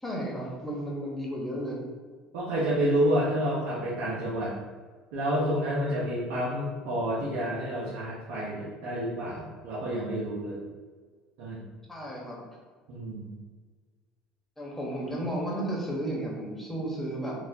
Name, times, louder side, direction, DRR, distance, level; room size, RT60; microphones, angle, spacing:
voice 1, 0.0-1.8 11.9-12.4 14.6-17.3, right 1 dB, 10° left, -3 dB, 1.1 m, -33 dB
voice 2, 2.3-4.6 5.1-10.6 11.4-11.6 12.9-13.3, equal, 85° right, -7 dB, 0.9 m, -29 dB
4.0 x 2.5 x 2.7 m, 1.5 s
supercardioid pair, 100°, 2 cm